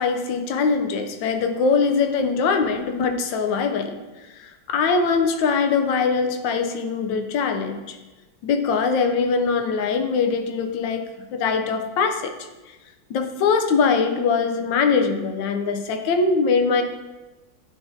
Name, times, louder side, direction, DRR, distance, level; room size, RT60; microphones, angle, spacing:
voice 1, 0.0-4.0 4.4-8.0 8.4-11.0 11.3-12.3 12.7-12.8 13.1-16.8, left 5 dB, 75° left, 6 dB, 1.2 m, -22 dB
10.0 x 3.6 x 2.7 m, 1.1 s
omnidirectional pair, 2.2 m